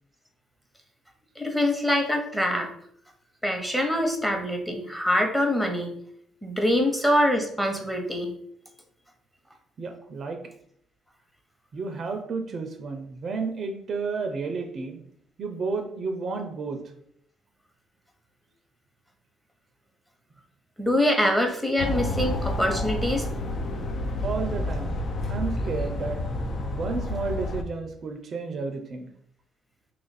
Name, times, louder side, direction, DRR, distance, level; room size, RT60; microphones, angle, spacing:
voice 1, 1.4-2.7 3.4-5.9 6.4-8.3 20.8-23.2, left 1 dB, 5° left, 4 dB, 0.9 m, -24 dB
voice 2, 9.8-10.4 11.7-15.0 15.4-16.8 24.2-24.9 25.3-26.2 26.7-29.1, right 4 dB, 50° right, 4 dB, 0.5 m, -31 dB
sound 1, 21.8-27.6, left 1 dB, 55° left, 0.5 m, -29 dB
2.9 x 2.5 x 4.0 m, 0.68 s
supercardioid pair, 60°, 0 cm